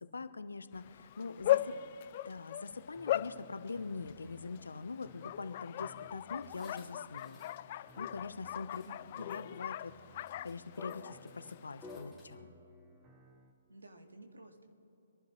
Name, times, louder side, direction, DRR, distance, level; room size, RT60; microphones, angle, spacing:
voice 1, 0.1-1.6 2.2-7.4 7.7-8.8 9.2-12.5, left 4 dB, 80° left, 11 dB, 0.9 m, -43 dB
Bark, 0.7-12.0, left 13 dB, 40° left, 0.4 m, -39 dB
voice 2, 1.2-2.0 8.7-9.2 13.7-14.7, right 1 dB, 85° right, 4 dB, 2.0 m, -55 dB
sound 1, 2.7-13.5, right 1 dB, 25° right, 1.5 m, -61 dB
sound 2, 6.4-7.6 7.9-8.0 8.5-8.9 9.2-9.5 10.3-12.3, left 4 dB, 10° left, 2.5 m, -51 dB
26.0 x 11.5 x 3.2 m, 2.9 s
figure-of-eight pair, 135°, 0 cm